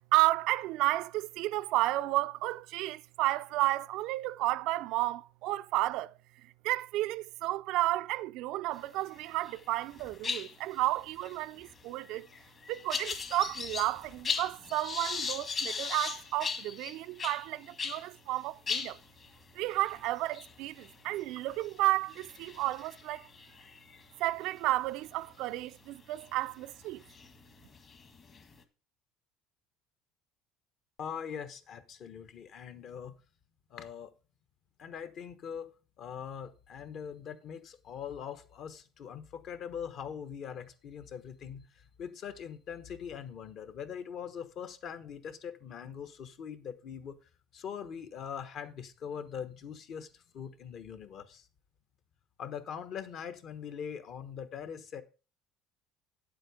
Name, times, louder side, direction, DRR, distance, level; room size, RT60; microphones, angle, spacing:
voice 1, 0.1-6.1 6.6-12.3 12.7-19.0 19.6-23.3 24.2-27.0, right 17 dB, 70° right, 0.4 m, -32 dB
sound 1, 9.1-9.6 9.9-18.1 18.4-18.5 18.7-24.5 25.1-25.3 26.2-26.3 26.9-28.6, left 5 dB, 35° left, 1.5 m, -39 dB
voice 2, 31.0-33.2 33.7-34.1 34.8-47.2 47.5-51.5 52.4-55.0, left 7 dB, 50° left, 1.2 m, -42 dB
9.3 x 7.7 x 4.9 m
cardioid pair, 125°, 0 cm